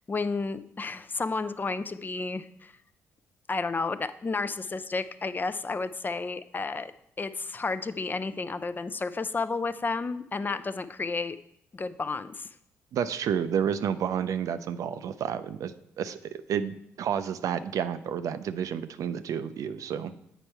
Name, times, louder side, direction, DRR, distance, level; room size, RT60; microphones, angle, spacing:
voice 1, 0.1-2.7 3.5-6.9 7.2-11.4 11.7-12.5, left 3 dB, 30° left, 12 dB, 0.4 m, -31 dB
voice 2, 12.9-15.7 16.0-20.1, right 8 dB, 60° right, 12 dB, 0.4 m, -30 dB
8.1 x 4.4 x 4.4 m, 0.74 s
hypercardioid pair, 45°, 6 cm